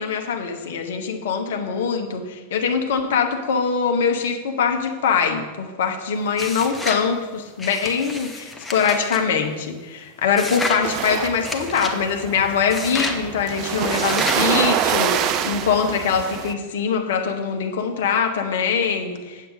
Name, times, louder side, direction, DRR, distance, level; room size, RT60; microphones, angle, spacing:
voice 1, 0.0-19.5, left 6 dB, 60° left, 5 dB, 0.9 m, -23 dB
sound 1, 6.3-7.1 7.6-9.2 10.4-10.8 11.4-12.0 12.7-13.2 13.9-14.5, left 2 dB, 10° left, 0.9 m, -30 dB
sound 2, 10.8-16.5, right 9 dB, 35° right, 0.5 m, -25 dB
7.8 x 7.5 x 5.0 m, 1.3 s
figure-of-eight pair, 90°, 0 cm